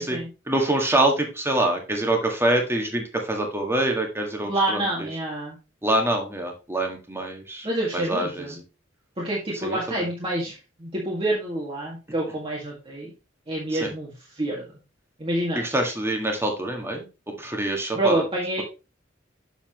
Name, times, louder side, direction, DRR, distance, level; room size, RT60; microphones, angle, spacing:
voice 1, 0.5-5.1 5.8-7.7 7.9-8.6 9.6-10.0 13.7-13.9 15.5-17.0 17.4-18.2, right 1 dB, 15° right, 2 dB, 1.7 m, -25 dB
voice 2, 4.4-5.6 7.6-8.6 9.2-13.1 13.5-14.1 14.4-14.6 15.2-15.6 17.9-18.6, right 1 dB, 30° right, -4 dB, 1.9 m, -27 dB
7.2 x 6.9 x 3.0 m, 0.29 s
head